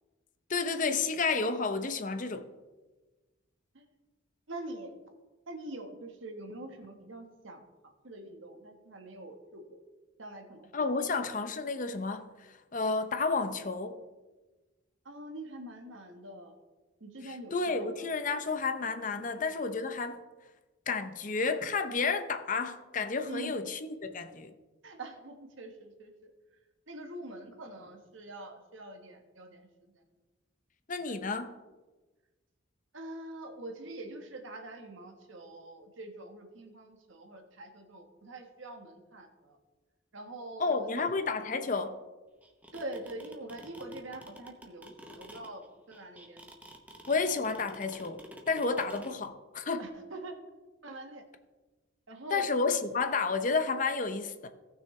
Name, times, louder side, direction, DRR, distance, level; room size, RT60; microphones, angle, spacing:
voice 1, 0.5-2.5 10.7-12.3 12.7-14.0 17.2-20.2 20.9-24.5 30.9-31.5 40.6-42.0 47.1-48.2 48.5-49.9 52.3-54.5, left 4 dB, 40° left, 0.7 m, -31 dB
voice 2, 4.5-4.9 5.5-7.6 8.0-9.8 10.2-10.8 15.0-16.5 17.0-17.9 19.2-19.4 23.3-23.5 24.8-26.3 26.9-29.9 32.9-39.6 40.1-41.1 42.7-46.5 49.8-50.4 50.8-51.2 52.1-52.5, right 1 dB, 80° right, 1.4 m, -44 dB
sound 1, 42.4-49.1, right 1 dB, 10° right, 0.9 m, -49 dB
17.5 x 6.3 x 3.3 m
head